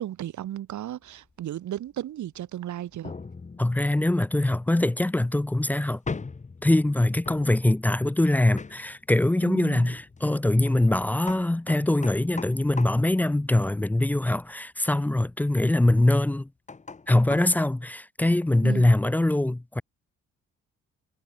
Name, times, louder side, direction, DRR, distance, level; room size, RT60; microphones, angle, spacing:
voice 1, 0.0-3.1 9.4-9.9 18.6-18.9, right 12 dB, 70° right, 2.9 m, -34 dB
sound 1, 1.1-1.4 1.9-2.0 2.3-2.4 3.0-14.1 16.7-17.6, left 4 dB, 25° left, 1.7 m, -41 dB
voice 2, 3.6-6.0 6.6-16.5 17.1-19.8, left 1 dB, 5° left, 0.3 m, -23 dB
cardioid pair, 90°, 30 cm